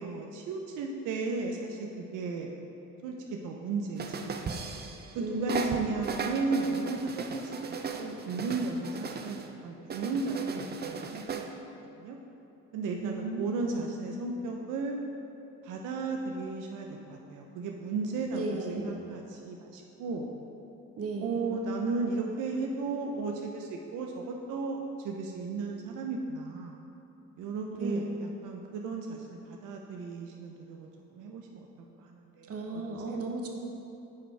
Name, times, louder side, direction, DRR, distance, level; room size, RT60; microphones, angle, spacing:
voice 1, 0.0-2.5 3.0-4.4 5.1-11.5 12.0-12.2 12.7-15.0 15.6-20.3 21.2-26.8 27.4-31.7 32.0-33.2, right 3 dB, 90° right, 1 dB, 0.6 m, -35 dB
sound 1, 4.0-5.2 5.5-9.5 9.9-11.5, right 5 dB, 35° right, 0.5 m, -37 dB
voice 2, 5.2-5.9 13.0-13.9 18.3-19.0 21.0-21.5 27.7-28.0 32.5-33.5, right 3 dB, 50° right, 1 dB, 1.0 m, -35 dB
9.1 x 5.2 x 3.3 m, 2.9 s
cardioid pair, 90°, 30 cm